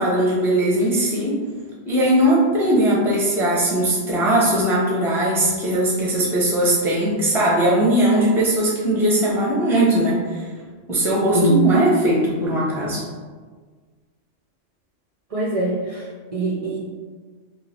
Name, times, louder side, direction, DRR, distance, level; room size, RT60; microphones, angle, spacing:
voice 1, 0.0-1.4 1.9-10.4 10.9-13.0, right 1 dB, 5° right, -4 dB, 0.5 m, -19 dB
voice 2, 15.3-16.8, right 2 dB, 60° right, -4 dB, 0.3 m, -23 dB
3.1 x 2.4 x 4.1 m, 1.5 s
omnidirectional pair, 1.3 m